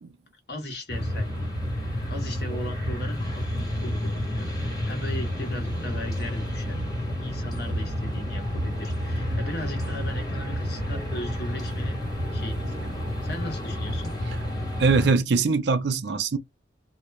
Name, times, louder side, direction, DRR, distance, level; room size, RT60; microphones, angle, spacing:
voice 1, 0.5-1.5 2.1-3.2 3.5-4.5 4.8-6.8 7.2-12.0 12.3-12.9 13.2-14.1, left 1 dB, 60° left, 1.1 m, -37 dB
sound 1, 0.9-15.1, left 1 dB, 20° left, 1.5 m, -30 dB
voice 2, 14.8-16.4, right 4 dB, 75° right, 0.5 m, -22 dB
2.9 x 2.1 x 2.3 m
head